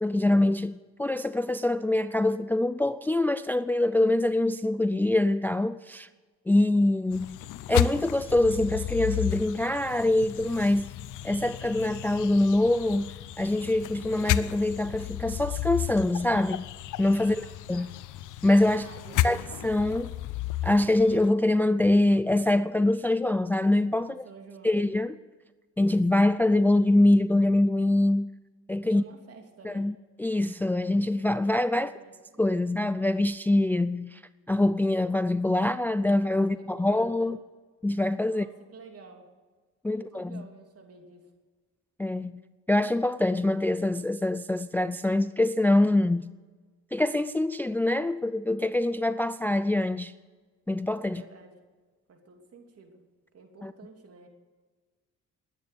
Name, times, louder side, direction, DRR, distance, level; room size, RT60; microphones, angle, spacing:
voice 1, 0.0-6.1 6.5-7.4 7.7-10.9 11.2-16.7 17.0-17.9 18.4-18.9 19.2-20.1 20.6-24.2 24.6-25.2 25.8-28.3 28.7-29.0 29.6-31.9 32.4-34.2 34.5-37.4 37.8-38.5 39.8-40.4 42.0-42.3 42.7-46.2 46.9-50.1 50.7-51.2 53.6-53.7, left 1 dB, 5° left, 0.4 m, -24 dB
sound 1, 7.1-21.3, left 13 dB, 80° left, 0.7 m, -33 dB
voice 2, 17.2-17.9 18.7-19.6 24.1-24.8 28.8-29.9 31.7-32.7 36.4-37.4 38.3-39.3 39.9-41.3 51.0-51.6 52.1-53.0 53.3-54.3, right 4 dB, 50° right, 3.2 m, -50 dB
21.5 x 9.4 x 6.9 m
cardioid pair, 90°, 30 cm